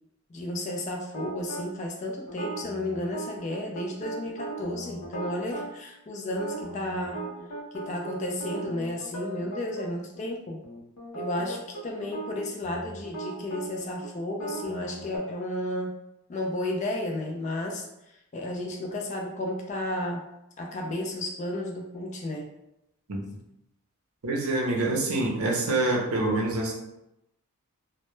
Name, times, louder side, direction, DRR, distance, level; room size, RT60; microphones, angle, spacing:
voice 1, 0.3-7.2 7.7-10.6 11.1-15.9 16.3-17.9 18.3-20.2 20.6-22.5, left 1 dB, 30° left, 1 dB, 0.3 m, -33 dB
sound 1, 1.1-1.7 2.3-5.7 6.3-9.9 10.2-10.3 10.6-15.2, right 2 dB, 80° left, 0.5 m, -38 dB
voice 2, 24.2-26.7, right 2 dB, 75° right, 0 dB, 0.6 m, -26 dB
2.1 x 2.0 x 3.0 m, 0.85 s
head